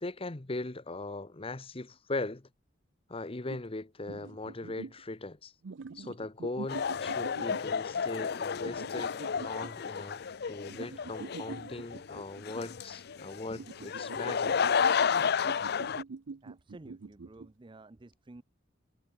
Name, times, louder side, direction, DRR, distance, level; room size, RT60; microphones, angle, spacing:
voice 1, 0.0-2.5 3.1-5.5 5.9-14.7, left 2 dB, 30° left, 1.0 m, -39 dB
sound 1, 3.5-3.6 4.1-5.0 5.6-7.8 8.6-9.7 10.7-12.4 13.5-17.5, right 4 dB, 70° right, 0.5 m, -45 dB
sound 2, 6.7-16.0, left 6 dB, 55° left, 0.5 m, -32 dB
voice 2, 16.4-18.4, right 2 dB, 25° right, 0.6 m, -51 dB
head